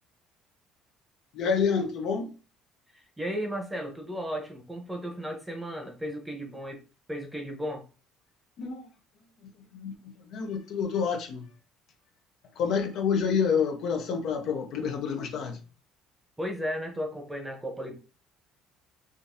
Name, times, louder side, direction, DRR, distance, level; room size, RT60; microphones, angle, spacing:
voice 1, 1.3-2.3 8.6-8.9 9.4-11.5 12.5-15.6, left 6 dB, 60° left, 0.7 m, -28 dB
voice 2, 2.9-6.8 7.1-7.8 16.4-17.9, equal, 10° right, 0.8 m, -35 dB
3.7 x 2.6 x 2.6 m
cardioid pair, 115°, 0 cm